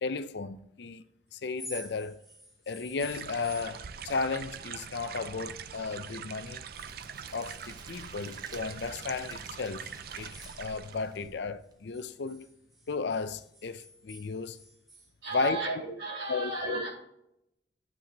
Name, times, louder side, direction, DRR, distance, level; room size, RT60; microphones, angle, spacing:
voice 1, 0.0-1.0 1.3-2.2 2.7-6.6 7.3-12.5 12.9-14.6 15.3-15.6 16.3-16.8, left 4 dB, 65° left, 0.5 m, -34 dB
sound 1, 1.5-5.7 6.0-8.5 9.0-11.3 11.6-15.1, equal, ahead, 3.0 m, -51 dB
sound 2, 3.0-11.2, right 7 dB, 50° right, 0.4 m, -43 dB
Crackle, 6.7-11.7, right 2 dB, 20° right, 0.8 m, -52 dB
voice 2, 15.2-16.9, right 3 dB, 70° right, 4.1 m, -34 dB
12.0 x 7.5 x 2.9 m
head